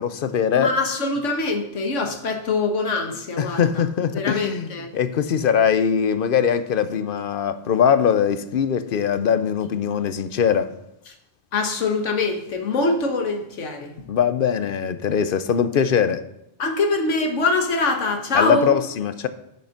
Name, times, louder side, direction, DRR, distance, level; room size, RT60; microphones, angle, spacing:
voice 1, 0.0-0.7 3.4-4.7 4.9-10.7 14.1-16.2 18.3-19.3, left 7 dB, 55° left, 0.7 m, -21 dB
voice 2, 0.5-3.8 4.1-4.9 11.1-11.2 11.5-14.0 16.6-18.8, left 3 dB, 90° left, 1.6 m, -24 dB
8.3 x 6.7 x 5.8 m
omnidirectional pair, 1.2 m